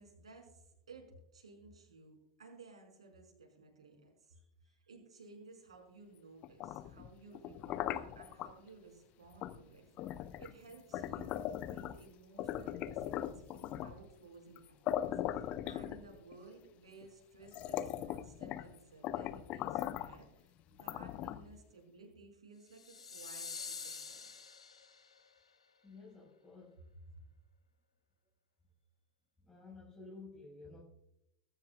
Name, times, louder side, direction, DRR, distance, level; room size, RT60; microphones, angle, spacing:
voice 1, 0.0-4.3 4.6-20.5 20.8-24.3 27.1-27.2, right 3 dB, 80° right, 1 dB, 5.1 m, -57 dB
voice 2, 4.3-4.7 25.8-26.8 29.5-30.8, left 3 dB, 15° left, -5 dB, 5.4 m, -53 dB
sound 1, 6.4-8.5 9.4-9.6 10.0-12.0 12.4-14.0 14.6-14.7 14.9-16.3 17.0-17.1 17.5-18.7 19.0-20.2 20.8-21.6, left 12 dB, 45° left, 0.7 m, -39 dB
sound 2, 22.7-25.2, left 5 dB, 85° left, 1.5 m, -46 dB
22.5 x 12.5 x 2.4 m, 0.82 s
figure-of-eight pair, 90°, 3 cm